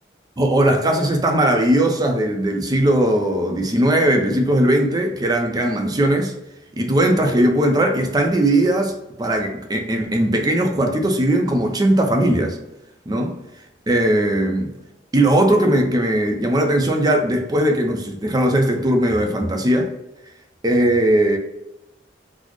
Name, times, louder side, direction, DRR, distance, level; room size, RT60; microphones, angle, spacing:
voice 1, 0.4-6.3 6.8-8.9 9.2-12.6 13.1-13.4 13.9-14.7 15.1-19.9 20.6-21.4, right 1 dB, 20° right, 0.5 m, -18 dB
4.0 x 2.0 x 3.0 m
head